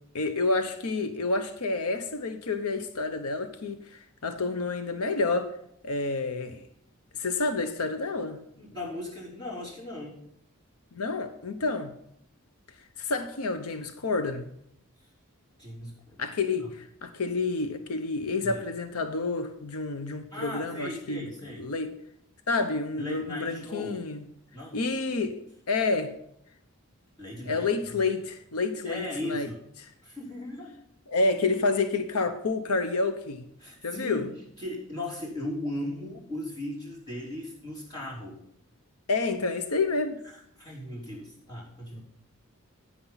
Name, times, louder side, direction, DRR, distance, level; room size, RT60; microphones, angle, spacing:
voice 1, 0.1-5.5 5.8-6.6 7.1-8.4 10.9-11.9 13.0-14.5 16.2-21.3 21.6-21.9 22.5-24.3 24.7-26.1 27.5-29.5 29.8-29.9 31.1-33.4 33.8-34.3 39.1-40.2, left 3 dB, 85° left, 0.9 m, -29 dB
voice 2, 8.6-10.2 15.6-16.7 18.4-18.6 20.3-21.6 23.0-24.0 24.5-24.8 27.2-28.0 28.8-29.6 30.0-30.8 33.6-38.4 40.6-42.0, left 1 dB, 20° left, 3.6 m, -37 dB
10.0 x 9.3 x 4.0 m
head